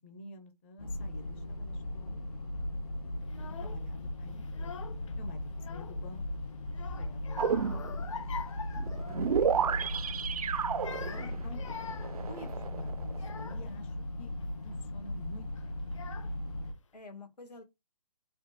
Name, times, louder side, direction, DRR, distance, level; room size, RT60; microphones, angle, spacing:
voice 1, 0.0-2.2 3.6-4.8 5.2-6.2 7.0-8.3 10.9-11.6 12.3-14.3 14.6-15.7, left 3 dB, 20° left, 0.5 m, -49 dB
sound 1, 0.8-16.7, left 1 dB, 70° left, 2.0 m, -38 dB
voice 2, 3.3-4.1 10.1-10.4 16.9-17.6, left 3 dB, 90° left, 1.8 m, -52 dB
Child speech kid speaking / Crying sobbing, 3.3-3.8 4.4-5.1 5.4-6.3 6.7-9.6 9.9-10.2 10.7-13.8 14.4-14.8 15.6-15.7 15.9-16.6, left 6 dB, 50° left, 0.8 m, -45 dB
sound 2, 7.4-8.1 8.8-13.5, right 7 dB, 65° right, 0.5 m, -32 dB
4.3 x 2.9 x 4.1 m
figure-of-eight pair, 150°, 20 cm